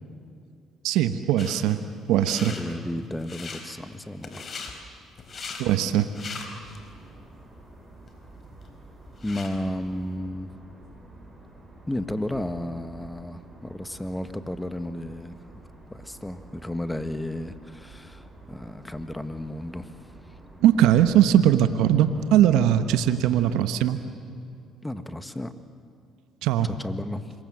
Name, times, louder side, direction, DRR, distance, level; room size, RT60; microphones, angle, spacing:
voice 1, 0.8-1.8 2.1-2.5 5.6-6.1 20.6-24.0 26.4-26.7, right 11 dB, 80° right, 10 dB, 1.1 m, -20 dB
sound 1, 1.4-1.6 2.1-2.6 3.2-3.6 4.2-4.7 5.2-5.6 6.0-6.8 7.3-7.4 8.1-8.2 8.4-9.6, left 5 dB, 45° left, 4.2 m, -39 dB
voice 2, 2.4-4.5 9.2-10.5 11.9-15.4 15.9-19.9 20.3-20.4 24.8-25.5 26.8-27.3, left 1 dB, 10° left, 10 dB, 1.7 m, -33 dB
sound 2, 6.3-23.6, right 2 dB, 15° right, 7.2 m, -49 dB
26.5 x 22.5 x 7.7 m, 2.5 s
supercardioid pair, 70°, 0 cm